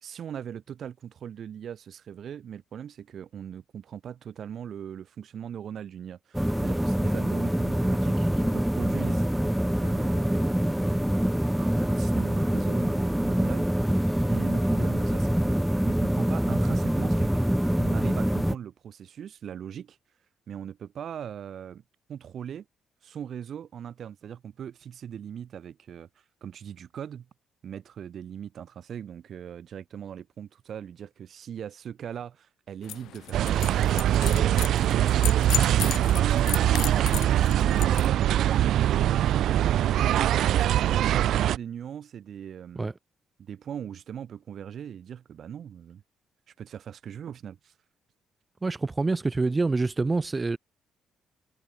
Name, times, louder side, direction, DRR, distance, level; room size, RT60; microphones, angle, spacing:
voice 1, 0.0-9.3 9.8-11.0 11.6-15.6 15.8-20.0 20.5-21.8 22.1-22.7 23.0-26.1 26.4-27.3 27.6-42.9 43.4-46.0 46.5-47.7, right 9 dB, 60° right, 3.8 m, -40 dB
sound 1, 6.3-18.6, equal, 5° right, 1.8 m, -25 dB
sound 2, 32.8-38.1, left 13 dB, 80° left, 3.6 m, -36 dB
sound 3, 33.3-41.6, right 12 dB, 75° right, 0.4 m, -23 dB
voice 2, 48.6-50.6, right 3 dB, 25° right, 2.2 m, -27 dB
cardioid pair, 90°, 0 cm